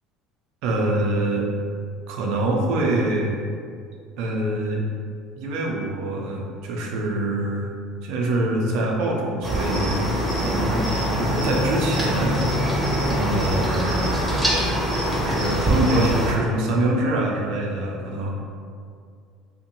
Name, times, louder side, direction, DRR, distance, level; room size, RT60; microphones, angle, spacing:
voice 1, 0.6-1.4 2.1-3.3 4.2-4.8 5.4-7.7 8.0-10.0 10.4-12.4 13.1-14.1 15.2-18.4, right 1 dB, 70° right, -1 dB, 0.4 m, -24 dB
Cricket, 9.4-16.3, equal, 10° right, 0.7 m, -23 dB
2.6 x 2.1 x 2.8 m, 2.2 s
supercardioid pair, 100°, 0 cm